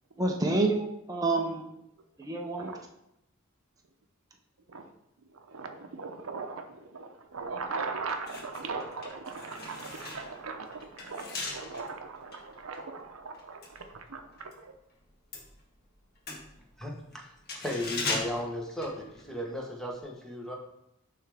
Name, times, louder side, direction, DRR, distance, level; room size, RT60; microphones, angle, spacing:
voice 1, 0.2-1.7 2.2-2.7, right 2 dB, 15° right, 1 dB, 0.6 m, -28 dB
voice 2, 2.5-2.8 4.7-4.9 5.3-14.7, right 4 dB, 85° right, 6 dB, 0.7 m, -39 dB
sound 1, 7.4-7.6 8.0-14.6 14.9-19.6 19.8-20.0, left 3 dB, 50° left, 1.3 m, -40 dB
voice 3, 16.8-17.3 17.5-20.6, left 1 dB, ahead, -1 dB, 1.0 m, -35 dB
9.6 x 3.4 x 3.4 m, 0.82 s
head